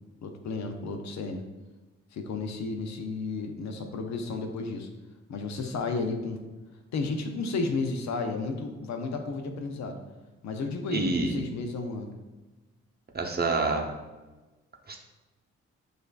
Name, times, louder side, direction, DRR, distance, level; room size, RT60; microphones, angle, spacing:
voice 1, 0.2-1.4 2.1-4.9 5.3-6.4 6.9-10.0 10.4-12.1, left 3 dB, 70° left, 5 dB, 0.6 m, -32 dB
voice 2, 10.9-11.4 13.1-13.9 14.9-15.0, right 3 dB, 35° right, 2 dB, 0.8 m, -27 dB
6.4 x 2.6 x 2.4 m, 1.2 s
supercardioid pair, 50°, 29 cm